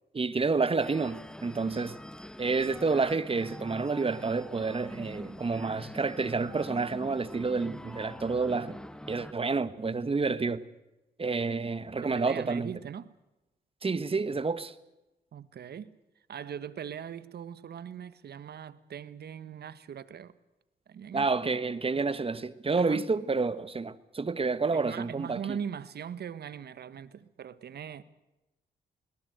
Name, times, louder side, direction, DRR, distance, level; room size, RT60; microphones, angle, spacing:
voice 1, 0.1-2.0 2.4-8.8 9.1-10.6 11.2-12.7 13.8-14.7 21.1-25.6, right 4 dB, 30° right, 1.5 m, -29 dB
sound 1, 0.8-9.3, equal, 5° left, 1.1 m, -44 dB
voice 2, 12.0-13.1 15.3-15.9 16.3-20.3 20.9-21.3 22.8-23.0 24.7-28.0, right 8 dB, 65° right, 1.5 m, -40 dB
22.0 x 18.5 x 8.1 m
cardioid pair, 70°, 18 cm